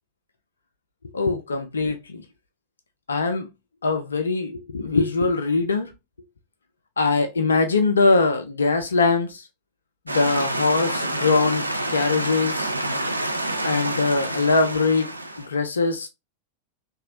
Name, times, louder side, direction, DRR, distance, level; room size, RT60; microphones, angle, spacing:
voice 1, 1.1-2.2 3.1-3.5 3.8-5.9 7.0-9.4 10.1-11.6 11.9-12.7 13.6-15.1 15.5-16.1, left 3 dB, 75° left, 0.4 m, -22 dB
sound 1, 10.1-15.5, right 1 dB, 85° right, 0.3 m, -28 dB
3.0 x 2.3 x 2.6 m
figure-of-eight pair, 90°, 0 cm